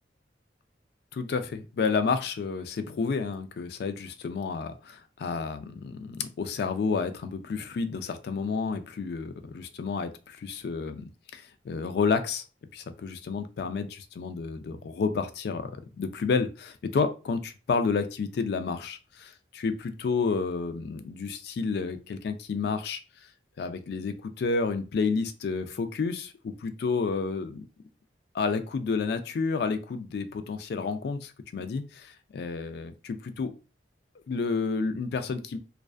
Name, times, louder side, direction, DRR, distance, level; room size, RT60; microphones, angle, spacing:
voice 1, 1.1-12.4 12.7-15.7 16.0-23.0 23.6-27.7 28.3-33.5 34.3-35.6, left 4 dB, 60° left, 10 dB, 0.3 m, -30 dB
2.4 x 2.2 x 2.3 m, 0.32 s
head